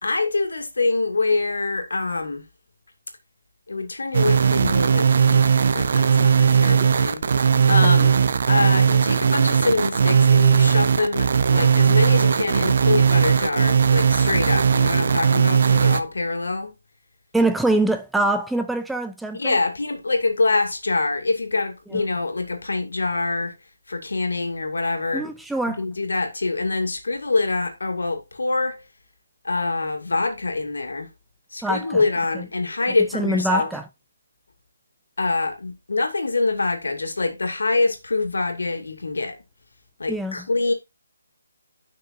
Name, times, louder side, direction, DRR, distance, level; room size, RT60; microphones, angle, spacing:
voice 1, 0.0-2.4 3.7-7.2 7.7-8.1 8.5-16.7 19.4-23.5 23.9-25.2 25.7-28.8 29.4-31.1 31.5-33.7 35.2-39.4 40.0-40.7, left 3 dB, 85° left, 2.5 m, -25 dB
sound 1, 4.1-16.0, right 6 dB, 45° right, 0.8 m, -18 dB
voice 2, 17.3-19.6 21.9-22.0 25.1-25.8 31.6-32.0 32.3-32.5 33.1-33.8 40.1-40.5, right 2 dB, ahead, 0.3 m, -24 dB
10.5 x 6.1 x 2.6 m
hypercardioid pair, 170°, 0 cm